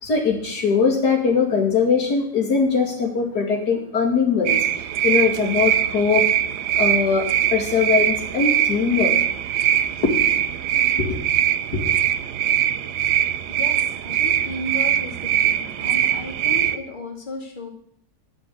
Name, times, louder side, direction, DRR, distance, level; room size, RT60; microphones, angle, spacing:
voice 1, 0.0-6.3 6.7-9.1 10.0-10.2 11.0-11.2 11.7-11.9, left 5 dB, 85° left, 0 dB, 2.9 m, -21 dB
sound 1, 4.5-16.8, right 10 dB, 80° right, 1.2 m, -22 dB
voice 2, 13.5-17.7, left 1 dB, 30° left, 0 dB, 2.2 m, -34 dB
11.0 x 7.3 x 8.3 m, 0.68 s
omnidirectional pair, 1.7 m